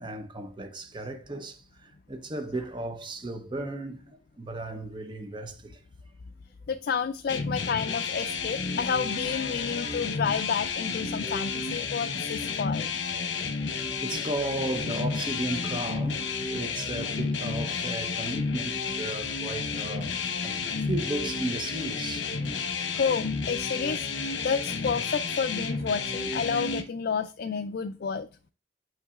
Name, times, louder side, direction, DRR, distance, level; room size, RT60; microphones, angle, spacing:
voice 1, 0.0-5.8 13.1-22.4 25.5-25.7, right 2 dB, 25° right, 0.7 m, -35 dB
voice 2, 6.7-12.9 22.9-24.1 24.4-28.3, left 6 dB, 55° left, 0.4 m, -30 dB
sound 1, 7.3-26.8, left 5 dB, 75° left, 0.9 m, -31 dB
7.2 x 5.6 x 2.4 m
head